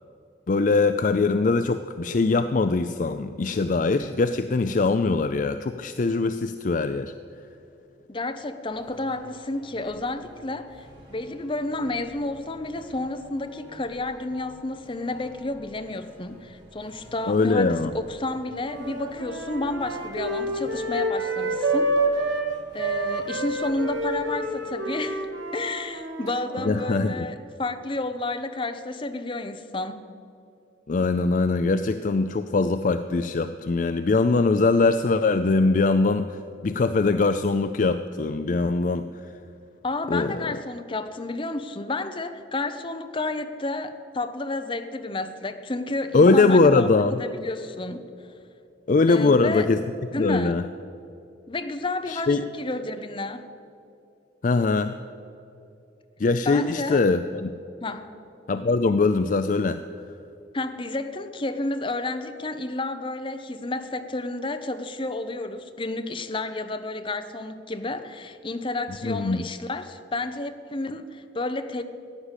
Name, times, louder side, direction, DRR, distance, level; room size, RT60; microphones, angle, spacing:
voice 1, 0.5-7.1 17.3-17.9 26.6-27.3 30.9-39.3 40.1-40.4 46.1-47.2 48.9-49.8 50.2-50.6 52.1-52.4 54.4-54.9 56.2-57.5 58.5-59.8 69.0-69.4, left 3 dB, 45° left, 10 dB, 0.4 m, -22 dB
voice 2, 8.1-21.9 22.7-25.3 25.5-30.1 39.8-46.9 47.2-48.1 49.1-49.7 50.1-50.6 51.5-53.5 56.4-57.0 57.8-58.1 60.5-71.8, left 2 dB, 30° left, 8 dB, 0.8 m, -31 dB
sound 1, 8.6-26.1, equal, 25° right, 4.5 m, -51 dB
sound 2, 18.6-22.5 22.8-27.2, right 1 dB, 85° right, 2.2 m, -28 dB
15.0 x 10.0 x 8.2 m, 2.6 s
head